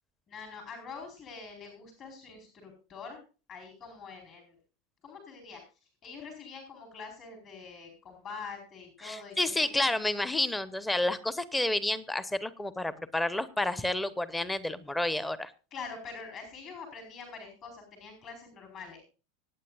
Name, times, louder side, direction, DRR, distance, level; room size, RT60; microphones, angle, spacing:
voice 1, 0.3-3.2 3.5-4.6 5.0-10.2 11.0-11.2 15.7-19.0, left 5 dB, 35° left, 3 dB, 4.4 m, -45 dB
voice 2, 9.0-15.5, left 2 dB, 10° left, 16 dB, 1.0 m, -30 dB
25.0 x 9.2 x 2.5 m, 0.35 s
figure-of-eight pair, 85°, 0 cm